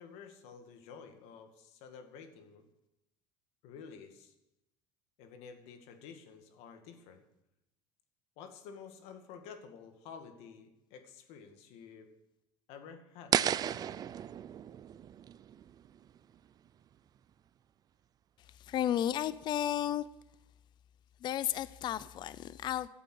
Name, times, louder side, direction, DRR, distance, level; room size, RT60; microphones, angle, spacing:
voice 1, 0.0-2.6 3.6-4.3 5.2-7.2 8.4-12.1 12.7-13.4, left 6 dB, 70° left, 2.1 m, -51 dB
sound 1, 13.3-16.3, right 9 dB, 35° right, 0.5 m, -34 dB
voice 2, 18.6-20.1 21.2-22.9, left 11 dB, 45° left, 0.5 m, -33 dB
12.5 x 8.4 x 7.8 m
supercardioid pair, 110°, 11 cm